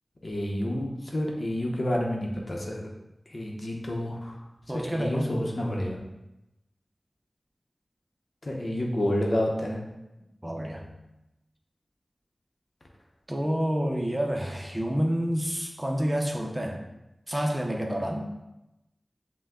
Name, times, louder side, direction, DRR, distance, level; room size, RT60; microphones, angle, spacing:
voice 1, 0.2-2.9 3.3-4.4 4.7-6.0 8.4-9.8, left 1 dB, 60° left, -1 dB, 0.8 m, -29 dB
voice 2, 4.7-5.3 10.4-10.9 13.3-16.8 17.3-18.3, equal, 20° right, 1 dB, 0.7 m, -28 dB
5.6 x 2.2 x 3.7 m, 0.94 s
wide cardioid pair, 45°, 0 cm